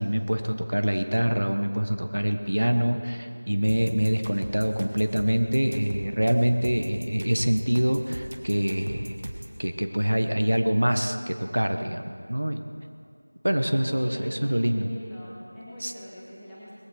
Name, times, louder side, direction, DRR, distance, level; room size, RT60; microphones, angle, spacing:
voice 1, 0.0-9.2 9.6-12.6 13.4-14.9 15.8-15.9, equal, 65° right, 7 dB, 1.2 m, -25 dB
sound 1, 3.7-9.6, right 1 dB, 40° right, 1.4 m, -38 dB
voice 2, 13.6-16.7, equal, ahead, -14 dB, 1.2 m, -43 dB
19.5 x 15.0 x 4.7 m, 2.4 s
figure-of-eight pair, 175°, 0 cm